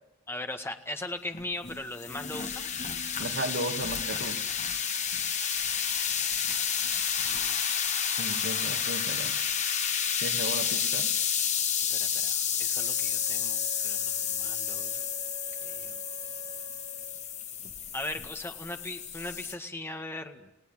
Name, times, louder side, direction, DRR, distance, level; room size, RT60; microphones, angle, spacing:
voice 1, 0.3-2.7 7.3-7.6 11.9-15.1 15.6-16.0 17.9-20.5, left 2 dB, 10° left, 6 dB, 1.8 m, -39 dB
sound 1, 1.3-19.5, left 7 dB, 35° left, 2.1 m, -30 dB
voice 2, 3.2-4.4 8.2-9.4 10.2-11.1, right 1 dB, 60° right, 6 dB, 2.5 m, -35 dB
Wind instrument woodwind instrument, 12.7-17.4, right 4 dB, 40° right, 3.1 m, -48 dB
29.5 x 17.0 x 9.1 m, 0.96 s
head